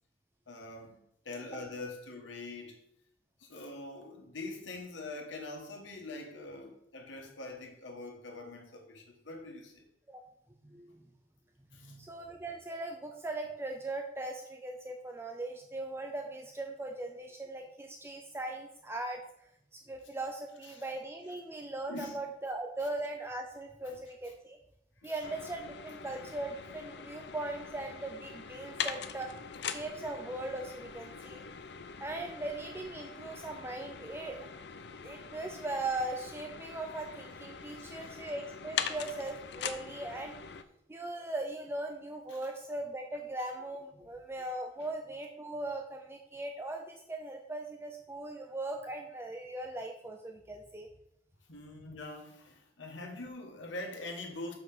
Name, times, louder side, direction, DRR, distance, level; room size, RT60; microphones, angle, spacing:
voice 1, 0.5-2.9 3.4-9.9 11.7-12.0 20.6-20.9 21.9-22.2 23.8-24.0 24.2-24.3 25.0-25.3 31.2-31.4 37.8-38.2 42.3-42.5 44.8-44.9 51.5-54.5, left 2 dB, 85° left, 2 dB, 1.8 m, -44 dB
voice 2, 10.6-11.0 11.7-19.2 19.7-24.6 25.0-29.3 29.6-31.4 32.0-34.5 35.0-40.3 40.9-50.9, right 2 dB, 15° right, 3 dB, 0.6 m, -39 dB
sound 1, 25.2-40.6, left 7 dB, 65° left, 0.6 m, -42 dB
6.0 x 5.6 x 6.8 m, 0.75 s
head